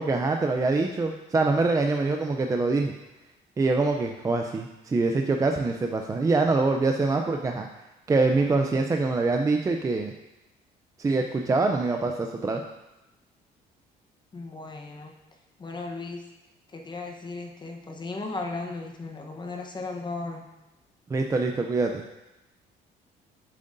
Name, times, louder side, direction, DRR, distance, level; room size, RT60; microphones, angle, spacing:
voice 1, 0.0-2.9 3.6-7.7 8.1-10.1 11.0-12.6 21.1-22.0, right 3 dB, 20° right, 3 dB, 0.4 m, -24 dB
voice 2, 14.3-15.1 15.6-16.2 16.7-20.4, left 3 dB, 25° left, 2 dB, 0.9 m, -36 dB
7.6 x 7.5 x 2.6 m, 0.99 s
cardioid pair, 110°, 17 cm